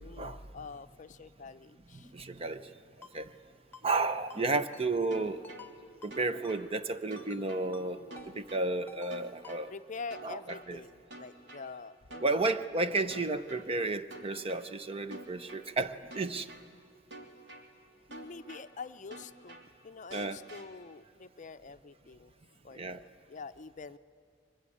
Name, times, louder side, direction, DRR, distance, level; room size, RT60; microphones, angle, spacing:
voice 1, 0.0-2.1 7.8-8.4 9.7-12.6 18.1-22.3 22.6-24.0, left 4 dB, 40° left, 11 dB, 0.6 m, -46 dB
voice 2, 2.0-2.7 3.1-3.3 3.8-5.4 6.0-8.0 8.3-9.7 10.2-10.4 10.7-10.8 12.2-16.5 20.1-20.4 22.7-23.0, right 3 dB, 30° right, 11 dB, 0.8 m, -32 dB
Ringtone, 3.0-3.1 3.7-4.0 4.3-4.4 4.7-4.9 5.4-5.7 6.0-6.1 6.4-6.6 7.2-7.4 7.7-7.9 8.2-8.3 8.9-9.1 9.4-9.6, left 3 dB, 10° left, 1.7 m, -51 dB
sound 1, 5.1-5.6 6.1-6.6 7.1-7.6 8.1-8.6 9.1-9.6 10.1-10.6 11.1-11.6 12.1-12.6 13.1-13.6 14.1-14.6 15.1-15.6 16.1-16.6 17.1-17.6 18.1-18.6 19.1-19.6 20.1-20.6, right 2 dB, 65° right, 2.9 m, -47 dB
23.5 x 22.0 x 9.9 m, 2.2 s
head